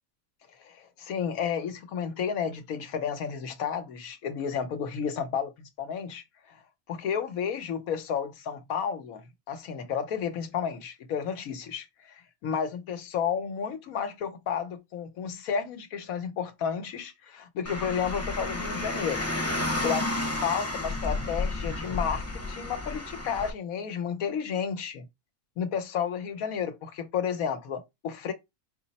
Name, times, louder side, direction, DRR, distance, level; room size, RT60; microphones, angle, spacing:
voice 1, 0.6-6.6 6.9-19.3 19.6-25.1 25.6-28.3, left 7 dB, 85° left, 1.3 m, -32 dB
Car, 17.7-23.5, left 2 dB, 15° left, 0.7 m, -31 dB
5.3 x 2.0 x 4.0 m
omnidirectional pair, 1.4 m